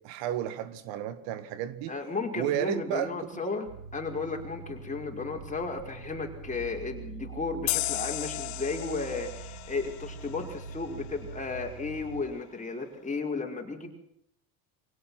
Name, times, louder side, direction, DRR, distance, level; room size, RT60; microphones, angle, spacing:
voice 1, 0.0-2.0 2.3-3.1, right 11 dB, 70° right, 15 dB, 2.0 m, -32 dB
voice 2, 1.9-3.7 3.9-13.9, left 4 dB, 15° left, 2 dB, 5.6 m, -34 dB
sound 1, 3.7-12.2, right 5 dB, 90° right, 6.2 m, -44 dB
sound 2, 7.7-11.0, left 19 dB, 80° left, 1.7 m, -35 dB
25.0 x 17.5 x 6.0 m, 0.71 s
supercardioid pair, 100°, 45 cm